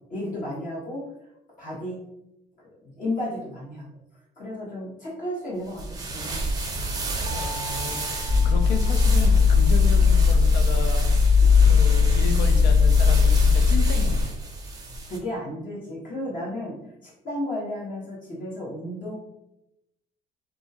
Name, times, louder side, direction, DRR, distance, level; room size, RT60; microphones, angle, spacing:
voice 1, 0.1-1.0 1.6-2.0 2.8-3.9 4.4-6.7 7.1-7.3 15.1-16.7 17.0-19.1, left 1 dB, 50° left, -6 dB, 1.2 m, -33 dB
sound 1, 5.7-15.2, right 2 dB, 20° right, 0.5 m, -31 dB
voice 2, 7.3-14.3, left 4 dB, 80° left, 6 dB, 0.4 m, -34 dB
Mallet percussion, 7.3-9.8, equal, 75° right, 0.6 m, -41 dB
sound 2, 8.3-14.2, left 5 dB, 5° left, 0.8 m, -18 dB
2.7 x 2.4 x 2.7 m, 0.87 s
cardioid pair, 110°, 17 cm